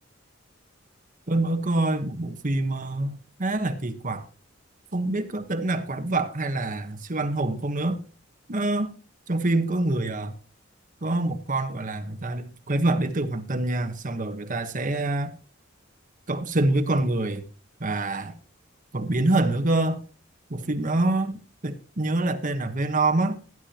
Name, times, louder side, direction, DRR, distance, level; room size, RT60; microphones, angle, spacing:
voice 1, 1.3-4.3 4.9-8.0 8.5-8.9 9.3-10.3 11.0-15.3 16.3-17.4 17.8-18.4 18.9-20.0 20.5-23.4, right 2 dB, 40° right, 1.2 m, -26 dB
17.0 x 11.0 x 2.9 m
head